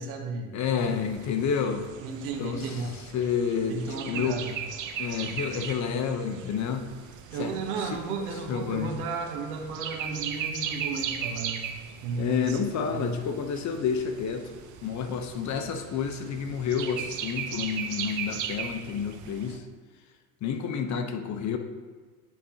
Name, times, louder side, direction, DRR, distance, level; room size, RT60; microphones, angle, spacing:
voice 1, 0.0-0.6 2.0-3.0 3.7-4.6 7.3-11.6 12.0-12.6 12.9-13.2, right 4 dB, 85° right, 3 dB, 1.1 m, -33 dB
voice 2, 0.5-1.9 2.4-4.4 5.0-6.9 7.4-7.5 7.8-8.0 8.5-8.9 12.2-14.5 14.8-19.6 20.4-21.6, left 7 dB, 40° left, 6 dB, 0.8 m, -29 dB
sound 1, 0.8-19.6, right 7 dB, 45° right, 0.7 m, -38 dB
10.0 x 4.2 x 2.8 m, 1.5 s
supercardioid pair, 95°, 42 cm